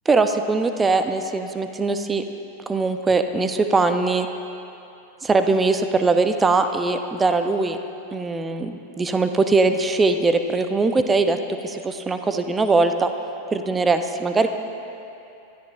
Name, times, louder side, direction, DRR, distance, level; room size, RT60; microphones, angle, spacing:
voice 1, 0.1-2.2 2.7-4.3 5.2-7.8 8.1-13.1 13.5-14.5, right 3 dB, 15° right, 8 dB, 0.7 m, -21 dB
23.5 x 13.5 x 2.6 m, 2.8 s
figure-of-eight pair, 90°, 0 cm